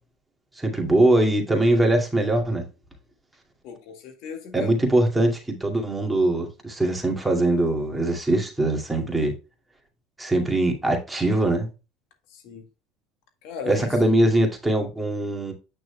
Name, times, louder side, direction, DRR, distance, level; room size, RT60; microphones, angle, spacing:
voice 1, 0.6-2.6 4.5-9.3 10.2-11.7 13.7-15.5, right 1 dB, 5° right, 2.4 m, -22 dB
voice 2, 3.6-4.8 12.3-12.7 13.4-14.0, left 6 dB, 65° left, 1.9 m, -37 dB
8.9 x 6.1 x 2.3 m
supercardioid pair, 120°, 0 cm